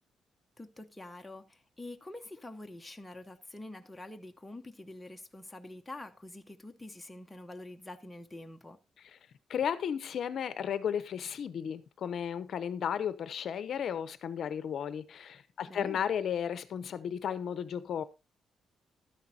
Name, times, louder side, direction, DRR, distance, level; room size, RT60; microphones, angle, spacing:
voice 1, 0.6-8.8 15.7-16.1, left 2 dB, 10° left, 0.7 m, -46 dB
voice 2, 9.5-18.0, left 8 dB, 55° left, 0.7 m, -34 dB
12.5 x 10.0 x 2.7 m
cardioid pair, 165°, 0 cm